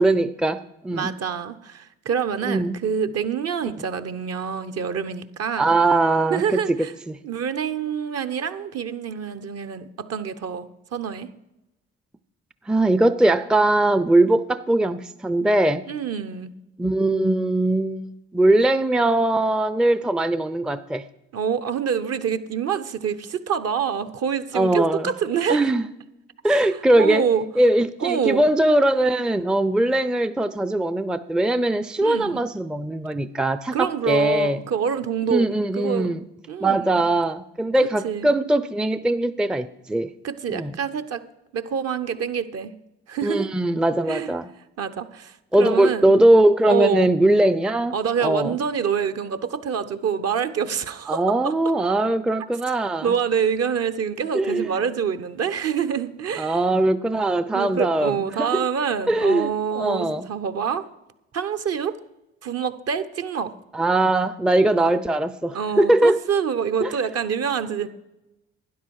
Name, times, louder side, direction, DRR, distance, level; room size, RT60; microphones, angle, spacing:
voice 1, 0.0-1.1 2.4-2.8 5.6-6.8 7.1-7.2 12.7-15.8 16.8-21.0 24.5-25.1 25.5-25.9 26.4-27.3 27.6-34.6 35.3-36.3 36.6-40.1 40.5-40.7 43.2-44.5 45.5-48.6 51.1-53.1 54.3-54.7 56.4-58.7 59.1-60.3 63.7-66.2 66.8-66.9, right 1 dB, 5° right, 14 dB, 0.5 m, -21 dB
voice 2, 0.9-5.8 6.3-6.9 7.2-11.3 15.9-16.5 21.3-25.6 27.0-27.5 28.0-28.5 32.0-32.4 33.7-36.2 36.5-37.0 38.0-38.3 40.2-41.2 41.5-42.7 43.1-43.5 44.1-44.3 44.8-46.2 46.7-47.1 47.9-51.5 53.0-56.6 57.5-60.8 61.3-62.0 62.4-63.5 64.8-64.9 65.5-67.9, right 7 dB, 50° right, 11 dB, 1.0 m, -26 dB
12.5 x 10.0 x 4.8 m, 0.92 s
hypercardioid pair, 50°, 31 cm